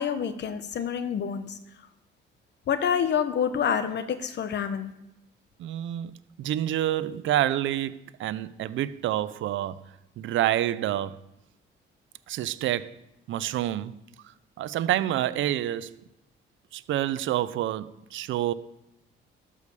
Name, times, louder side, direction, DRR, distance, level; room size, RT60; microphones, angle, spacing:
voice 1, 0.0-1.6 2.7-4.9, left 8 dB, 60° left, 1.1 m, -27 dB
voice 2, 5.6-9.8 10.2-11.2 12.3-13.0 13.3-13.9 14.6-16.0 16.7-18.5, right 12 dB, 75° right, 0.6 m, -28 dB
12.0 x 5.0 x 6.8 m
cardioid pair, 90°, 20 cm